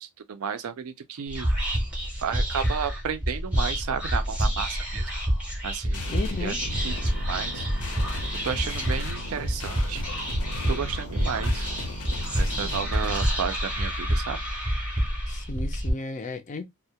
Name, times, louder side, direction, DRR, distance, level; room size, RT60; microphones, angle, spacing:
voice 1, 0.0-1.5 2.2-5.1 5.6-6.1 6.4-7.7 8.4-10.0 10.7-11.7 12.4-14.4, right 7 dB, 70° right, 0.4 m, -32 dB
Whispering, 1.3-15.9, equal, 5° right, 0.6 m, -28 dB
sound 1, 5.9-13.3, left 2 dB, 85° left, 0.7 m, -38 dB
voice 2, 6.1-6.6 15.3-16.7, left 3 dB, 35° left, 0.4 m, -34 dB
2.2 x 2.1 x 2.7 m
head